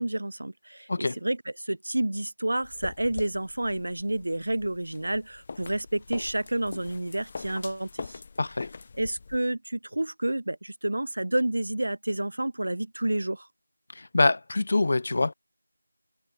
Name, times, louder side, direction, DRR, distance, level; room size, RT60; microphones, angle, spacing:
voice 1, 0.0-8.2 9.0-13.5, right 1 dB, 80° right, 5.6 m, -29 dB
sound 1, 2.6-9.4, left 4 dB, 25° left, 6.8 m, -42 dB
voice 2, 8.4-8.7 13.9-15.3, left 2 dB, 40° left, 4.4 m, -25 dB
figure-of-eight pair, 175°, 0 cm